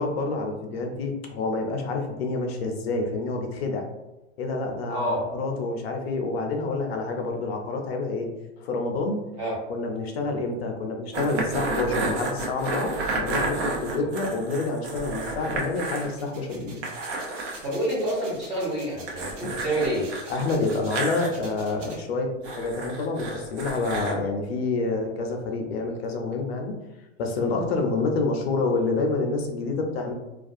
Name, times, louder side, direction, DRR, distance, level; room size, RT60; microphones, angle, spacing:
voice 1, 0.0-3.9 4.4-8.3 8.6-9.2 9.7-16.8 19.4-19.6 20.3-26.8 27.2-30.1, left 3 dB, 55° left, 3 dB, 0.5 m, -28 dB
voice 2, 4.9-5.2 9.4-9.6 14.0-14.1 17.6-20.1, right 1 dB, 15° right, -6 dB, 0.5 m, -28 dB
sound 1, 11.1-16.1 16.4-16.5 16.8-17.6 19.1-21.3 22.4-24.2, right 3 dB, 65° right, 0.8 m, -31 dB
sound 2, 15.7-22.0, right 3 dB, 80° right, 1.2 m, -47 dB
2.3 x 2.3 x 2.5 m, 1.0 s
hypercardioid pair, 150°, 37 cm